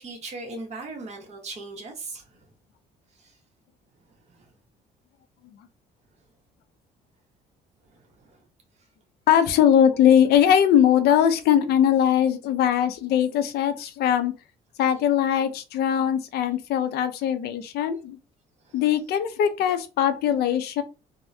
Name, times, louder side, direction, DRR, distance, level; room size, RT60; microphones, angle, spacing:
voice 1, 0.0-2.4 3.2-3.3 4.3-4.5 7.9-8.4 18.6-18.8, right 3 dB, 40° right, 1.3 m, -39 dB
voice 2, 9.3-14.3 14.8-18.2 18.7-20.8, left 9 dB, 70° left, 0.6 m, -21 dB
3.5 x 2.2 x 2.6 m
cardioid pair, 110°, 17 cm